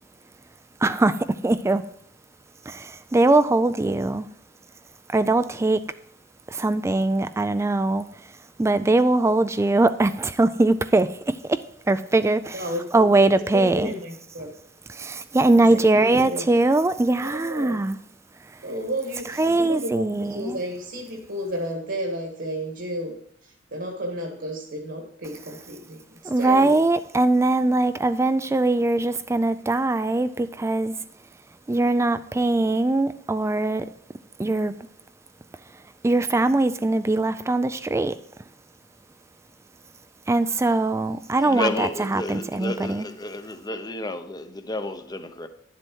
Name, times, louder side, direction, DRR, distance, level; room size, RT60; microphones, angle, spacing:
voice 1, 0.8-1.9 2.6-4.3 5.1-6.0 6.5-13.9 14.9-18.0 18.4-18.6 19.3-20.6 26.2-31.0 31.7-33.9 34.4-34.8 35.7-38.2 40.3-43.1, right 2 dB, 15° right, 0.3 m, -22 dB
voice 2, 12.5-13.3 13.5-14.5 15.5-16.4 17.2-17.8 18.6-26.8, equal, 60° right, 1.7 m, -32 dB
voice 3, 41.4-45.5, left 1 dB, 20° left, 0.7 m, -31 dB
11.0 x 7.6 x 4.6 m
head